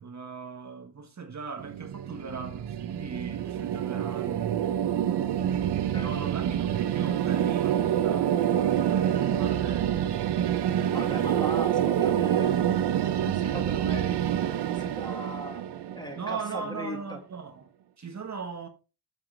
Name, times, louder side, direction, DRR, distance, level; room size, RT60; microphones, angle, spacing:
voice 1, 0.0-4.7 6.0-10.2 10.9-11.2 16.1-18.7, right 5 dB, 40° right, 1.4 m, -39 dB
sound 1, 1.6-16.6, right 10 dB, 70° right, 0.8 m, -27 dB
voice 2, 10.9-15.6 15.9-17.2, left 1 dB, 10° left, 1.8 m, -40 dB
7.6 x 6.5 x 3.3 m
cardioid pair, 80°, 42 cm